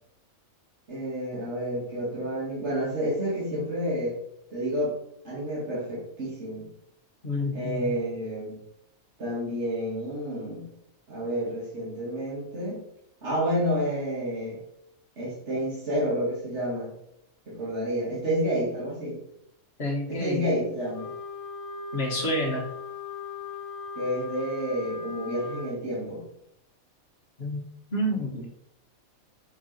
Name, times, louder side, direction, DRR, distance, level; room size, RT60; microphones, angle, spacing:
voice 1, 0.9-4.2 4.5-4.9 5.2-6.7 7.5-8.6 9.2-10.7 11.1-12.8 13.2-14.6 15.2-16.9 17.5-19.2 20.1-21.1 24.0-26.2, equal, 50° right, -6 dB, 2.4 m, -29 dB
voice 2, 7.2-7.9 19.8-20.4 21.9-22.6 27.4-27.6 27.9-28.5, left 1 dB, 45° left, -1 dB, 1.8 m, -29 dB
Wind instrument woodwind instrument, 20.9-25.8, left 3 dB, 75° left, 1.3 m, -38 dB
6.7 x 4.8 x 4.3 m, 0.73 s
omnidirectional pair, 1.5 m